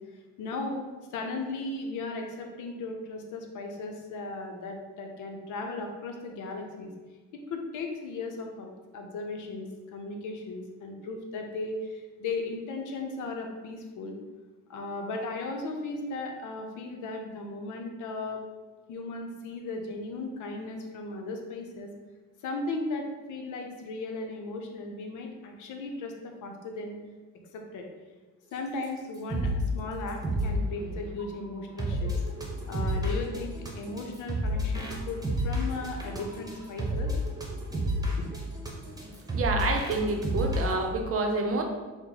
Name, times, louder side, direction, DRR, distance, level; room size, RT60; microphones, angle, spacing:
voice 1, 0.4-0.8 1.1-6.9 7.3-14.1 14.7-18.4 18.9-21.9 22.4-26.1 26.4-27.0 27.5-27.8 28.5-32.2 32.7-37.1 38.2-38.3, left 3 dB, 85° left, 2 dB, 0.7 m, -36 dB
sound 1, 28.8-28.9 29.1-29.7 30.1-40.7, equal, 10° right, 0.9 m, -30 dB
voice 2, 39.3-41.6, right 3 dB, 50° right, 3 dB, 0.7 m, -28 dB
4.4 x 2.1 x 3.8 m, 1.3 s
cardioid pair, 90°, 30 cm